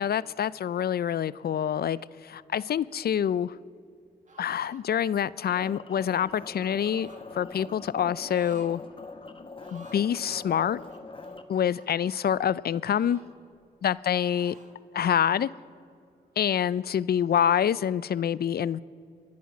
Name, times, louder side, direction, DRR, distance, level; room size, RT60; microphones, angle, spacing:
voice 1, 0.0-2.0 2.2-3.6 4.4-7.1 7.4-8.8 9.7-10.8 11.5-13.2 13.8-14.5 14.9-15.5 16.4-18.8, left 9 dB, 60° left, 19 dB, 0.4 m, -26 dB
sound 1, 4.2-4.8 5.4-6.1 6.8-7.3 8.1-8.7 9.1-9.2 9.5-10.1 10.8-12.2 12.9-13.9 14.2-14.8, right 2 dB, 45° right, 1.8 m, -54 dB
sound 2, 5.5-11.4, left 3 dB, 30° left, 1.0 m, -43 dB
23.0 x 8.5 x 6.0 m, 2.4 s
cardioid pair, 50°, 18 cm